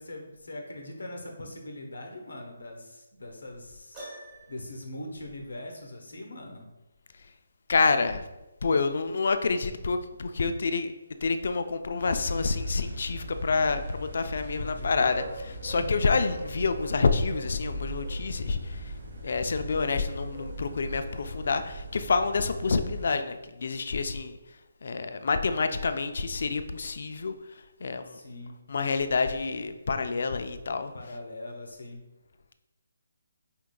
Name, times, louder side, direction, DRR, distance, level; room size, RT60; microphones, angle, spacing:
voice 1, 0.0-4.1 4.5-6.7 14.6-15.2 15.8-16.3 28.1-28.6 30.9-32.0, left 1 dB, 85° left, 2 dB, 0.8 m, -41 dB
Piano, 3.9-4.8, right 1 dB, 15° right, 1.1 m, -44 dB
voice 2, 7.7-8.2 8.6-10.9 11.2-15.2 15.6-18.8 19.2-24.4 24.8-27.3 27.8-28.2 28.7-30.9, left 4 dB, 60° left, 9 dB, 0.3 m, -28 dB
sound 1, 12.0-23.1, equal, 65° right, 1.1 m, -39 dB
4.5 x 3.6 x 2.2 m, 1.0 s
hypercardioid pair, 165°, 0 cm